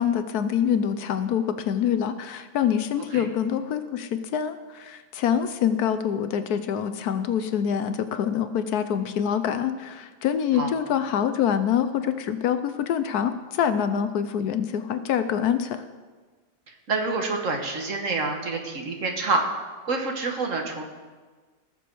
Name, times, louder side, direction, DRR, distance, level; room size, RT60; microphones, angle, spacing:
voice 1, 0.0-15.8, left 8 dB, 70° left, 10 dB, 1.1 m, -25 dB
voice 2, 16.7-20.8, right 3 dB, 50° right, 3 dB, 1.5 m, -27 dB
19.0 x 7.0 x 4.6 m, 1.4 s
omnidirectional pair, 1.8 m